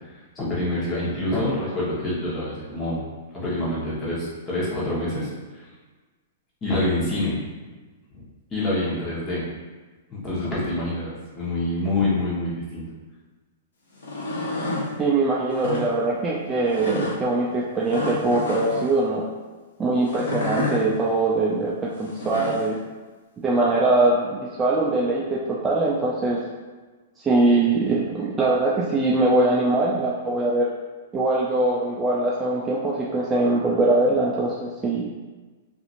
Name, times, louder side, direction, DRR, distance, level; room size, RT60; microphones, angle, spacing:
voice 1, 0.3-3.1 3.3-5.6 6.6-7.4 8.1-8.2 8.5-9.5 10.1-12.9, left 1 dB, 20° left, -7 dB, 1.1 m, -26 dB
sound 1, 13.9-14.9 15.5-15.8 16.7-17.1 17.9-18.9 20.1-20.8 22.0-22.7, left 2 dB, 80° left, 0.8 m, -29 dB
voice 2, 15.0-19.3 19.8-22.8 23.4-26.4 27.2-30.7 31.1-35.1, right 2 dB, 15° right, -5 dB, 0.4 m, -22 dB
2.8 x 2.5 x 2.5 m, 1.3 s
hypercardioid pair, 130°, 0 cm